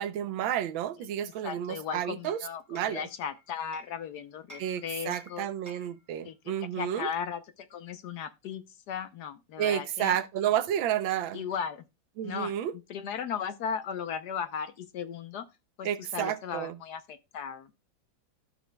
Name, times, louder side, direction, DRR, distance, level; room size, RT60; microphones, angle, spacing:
voice 1, 0.0-2.4 2.7-3.1 4.6-7.1 9.6-11.5 12.2-12.7 15.8-16.8, right 10 dB, 80° right, 1.5 m, -31 dB
voice 2, 1.2-5.5 6.2-6.3 6.7-10.2 11.3-11.8 12.2-15.5 15.8-17.7, left 7 dB, 70° left, 1.1 m, -37 dB
Hammer, 1.5-4.0 4.5-6.1, equal, 10° right, 1.3 m, -53 dB
13.5 x 6.2 x 2.2 m
omnidirectional pair, 2.1 m